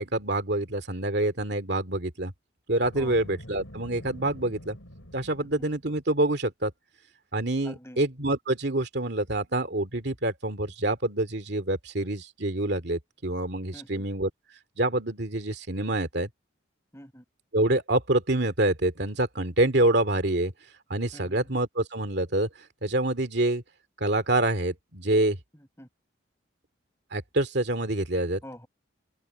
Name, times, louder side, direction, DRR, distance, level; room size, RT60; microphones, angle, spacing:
voice 1, 0.0-2.3 2.7-4.8 5.1-6.7 7.3-14.3 14.8-16.3 17.5-20.5 20.9-22.5 22.8-23.6 24.0-25.4 27.1-28.4, right 1 dB, 55° right, 2.4 m, -26 dB
Boom, 2.8-5.9, equal, 85° left, 7.7 m, -45 dB
voice 2, 7.6-8.0 13.7-14.0 16.9-17.2 21.1-21.5 25.5-25.9 28.4-28.7, left 1 dB, 15° left, 4.9 m, -46 dB
head